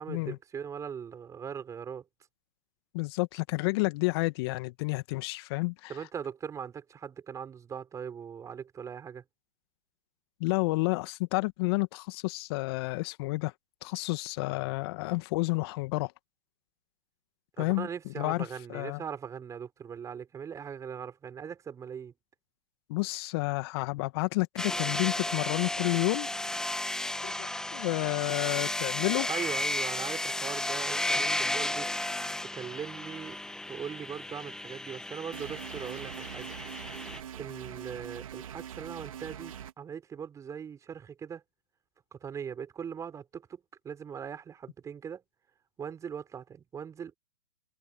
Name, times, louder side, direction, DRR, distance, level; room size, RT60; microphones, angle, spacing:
voice 1, 0.0-2.0 5.9-9.2 17.6-22.1 29.3-31.9 32.5-33.4 33.7-36.6 37.4-41.4 42.1-43.6 43.8-45.2 45.8-47.1, right 7 dB, 15° right, 5.5 m, -40 dB
voice 2, 2.9-6.0 10.4-13.5 13.8-16.1 17.6-17.9 18.2-19.0 22.9-26.3 27.2-29.3, left 24 dB, 45° left, 1.8 m, -30 dB
sound 1, 24.6-37.2, left 1 dB, 5° left, 1.6 m, -33 dB
sound 2, 35.3-39.7, right 10 dB, 70° right, 4.3 m, -43 dB
hypercardioid pair, 125°, 18 cm